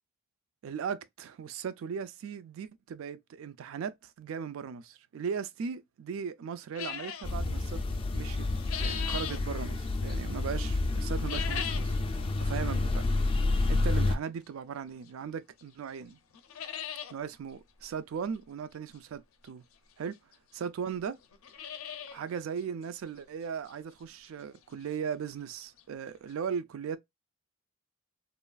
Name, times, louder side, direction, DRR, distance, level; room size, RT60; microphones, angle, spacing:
voice 1, 0.6-7.8 8.1-8.5 8.8-12.0 12.4-12.9 13.7-16.2 17.1-19.6 20.0-20.2 20.6-21.2 22.1-27.0, right 7 dB, 70° right, 0.3 m, -38 dB
sound 1, 6.7-7.3 8.3-9.4 11.1-12.0 12.4-12.5 13.3-13.4 15.1-15.2 15.6-15.7 16.0-16.1 16.3-17.1 17.5-17.6 17.8-17.9 19.5-19.6 20.3-20.4 20.6-20.7 21.2-22.2 22.6-22.7 23.2-23.3 23.7-23.8 25.5-25.6 25.8-25.9 26.3-26.4, left 9 dB, 85° left, 0.5 m, -38 dB
sound 2, 7.2-14.2, left 2 dB, 25° left, 0.3 m, -29 dB
3.0 x 2.3 x 2.3 m
head